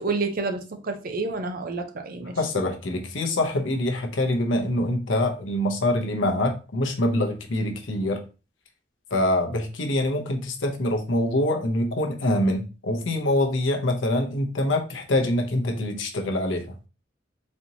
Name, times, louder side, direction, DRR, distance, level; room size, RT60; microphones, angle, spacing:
voice 1, 0.0-2.4, right 3 dB, 50° right, 6 dB, 0.6 m, -29 dB
voice 2, 2.4-8.2 9.1-16.6, left 1 dB, 80° left, 4 dB, 0.7 m, -25 dB
4.2 x 2.8 x 2.7 m, 0.32 s
head